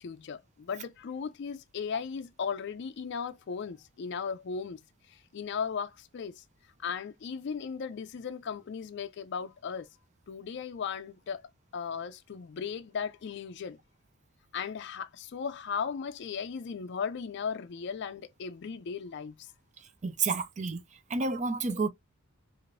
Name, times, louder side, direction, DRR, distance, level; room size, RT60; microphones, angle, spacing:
voice 1, 0.0-4.8 5.1-6.4 6.8-9.9 10.3-11.4 11.7-13.8 14.5-19.5, left 6 dB, 55° left, 0.4 m, -36 dB
voice 2, 20.0-20.8 21.1-21.9, right 4 dB, 35° right, 0.4 m, -30 dB
4.9 x 2.5 x 2.5 m
head